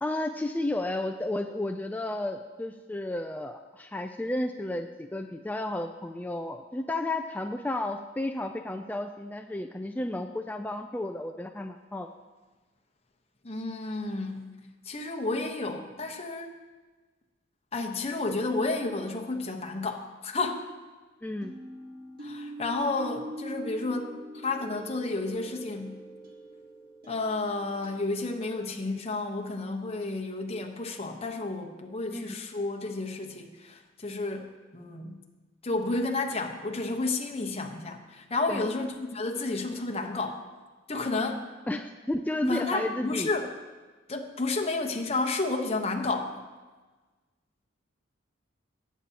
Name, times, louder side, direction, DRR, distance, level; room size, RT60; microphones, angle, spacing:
voice 1, 0.0-12.1 21.2-21.5 32.1-32.3 38.5-38.7 41.7-43.3, left 1 dB, 10° left, 6 dB, 0.3 m, -32 dB
voice 2, 13.4-14.5 14.9-16.5 17.7-20.7 22.2-24.1 24.4-26.0 27.1-34.5 34.7-35.2 35.6-40.4 40.9-41.4 42.5-43.5 44.1-46.3, left 3 dB, 30° left, 2 dB, 1.0 m, -31 dB
sound 1, 21.4-28.7, right 1 dB, 50° right, 1.5 m, -43 dB
19.0 x 8.3 x 2.9 m, 1.3 s
head